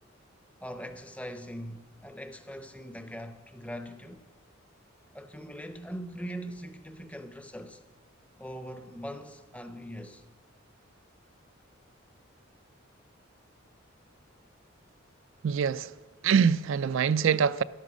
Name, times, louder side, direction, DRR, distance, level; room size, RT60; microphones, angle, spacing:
voice 1, 0.6-4.3 5.1-7.8 8.4-10.2, equal, 5° left, 0.7 m, -41 dB
voice 2, 15.4-15.9 16.2-17.6, right 7 dB, 65° right, 0.3 m, -24 dB
13.0 x 11.5 x 6.2 m
head